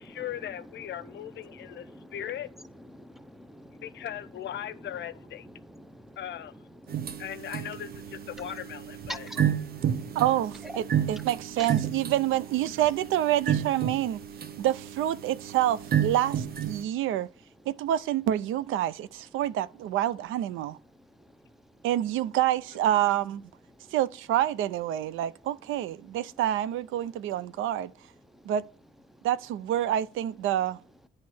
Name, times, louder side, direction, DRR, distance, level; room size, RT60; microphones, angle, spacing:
voice 1, 0.0-2.5 3.8-5.5 6.2-6.5 7.2-9.3 22.9-23.0, left 10 dB, 65° left, 0.6 m, -38 dB
voice 2, 1.5-2.2 2.9-4.0 5.6-6.2 7.0-7.2 9.1-10.2 10.6-10.8 21.2-21.3 23.8-23.9 28.3-28.4, equal, ahead, 0.6 m, -45 dB
sound 1, 6.9-16.8, right 9 dB, 50° right, 0.7 m, -31 dB
voice 3, 10.1-14.2 14.6-17.3 17.7-20.8 21.8-23.4 23.9-27.9 28.4-28.6 29.2-30.8, right 12 dB, 85° right, 0.5 m, -27 dB
9.3 x 3.2 x 6.1 m
cardioid pair, 90°, 20 cm